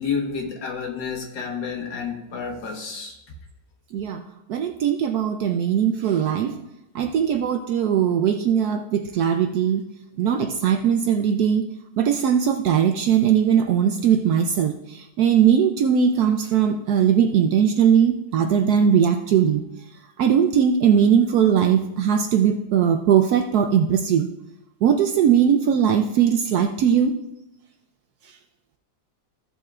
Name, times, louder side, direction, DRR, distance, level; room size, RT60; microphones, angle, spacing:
voice 1, 0.0-3.2, left 6 dB, 75° left, 1 dB, 2.0 m, -30 dB
voice 2, 4.5-6.6 6.9-9.8 10.2-11.6 12.0-19.6 20.2-24.3 24.8-27.1 28.3-28.4, right 8 dB, 70° right, 6 dB, 0.9 m, -19 dB
14.5 x 7.1 x 2.4 m, 0.91 s
omnidirectional pair, 2.0 m